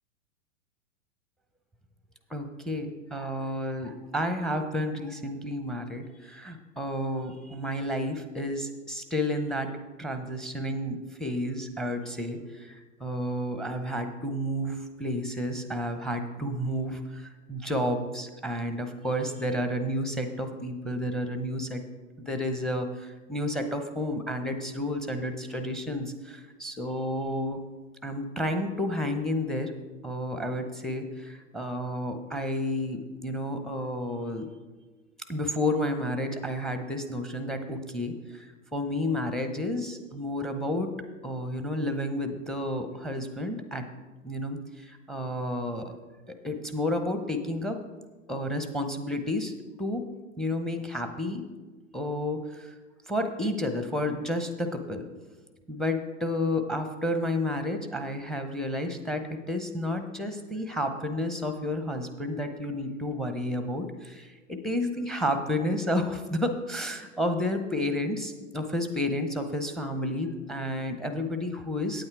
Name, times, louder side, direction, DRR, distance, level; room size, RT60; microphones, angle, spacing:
voice 1, 2.3-21.8 22.2-27.6 28.0-29.7 30.0-34.5 35.3-40.9 41.2-43.9 44.2-46.0 46.3-47.8 48.3-49.5 49.8-50.0 50.4-51.4 51.9-52.7 53.1-55.0 55.7-72.1, left 1 dB, ahead, 8 dB, 0.6 m, -31 dB
8.9 x 8.7 x 4.6 m, 1.2 s
hypercardioid pair, 105°, 39 cm